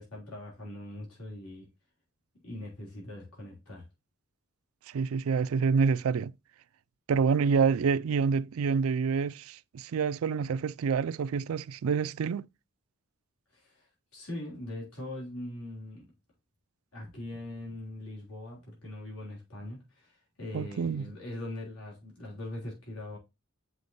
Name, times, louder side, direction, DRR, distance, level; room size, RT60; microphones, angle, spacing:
voice 1, 0.0-1.7 2.4-3.8 13.5-13.9 14.1-16.0 16.9-23.2, left 1 dB, 90° left, 3.4 m, -41 dB
voice 2, 4.9-6.3 7.1-12.5 20.5-21.1, right 5 dB, 70° right, 0.4 m, -27 dB
7.8 x 5.1 x 2.6 m
head